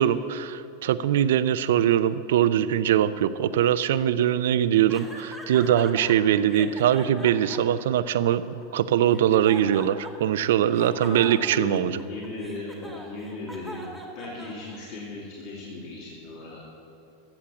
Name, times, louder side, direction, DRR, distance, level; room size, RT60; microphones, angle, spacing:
voice 1, 0.0-12.0, right 10 dB, 80° right, 14 dB, 0.5 m, -22 dB
sound 1, 4.9-6.2 6.5-8.6 9.1-10.4 10.7-15.0, right 1 dB, 5° left, 2.0 m, -42 dB
voice 2, 10.8-13.9 14.1-16.6, left 3 dB, 50° left, -5 dB, 2.7 m, -37 dB
13.0 x 7.4 x 7.6 m, 2.6 s
supercardioid pair, 130°, 0 cm